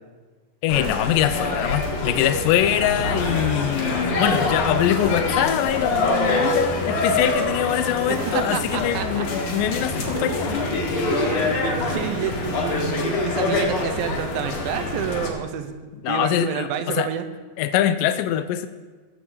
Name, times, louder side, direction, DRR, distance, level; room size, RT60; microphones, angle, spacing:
voice 1, 0.6-10.6 16.0-17.1 17.6-18.7, left 11 dB, 80° left, 10 dB, 2.1 m, -23 dB
sound 1, 0.7-15.3, left 2 dB, 55° left, 2.5 m, -25 dB
voice 2, 8.1-9.3 10.1-10.4 11.5-15.7 16.1-17.3, right 8 dB, 90° right, 7 dB, 2.6 m, -29 dB
18.5 x 7.4 x 4.2 m, 1.3 s
omnidirectional pair, 4.0 m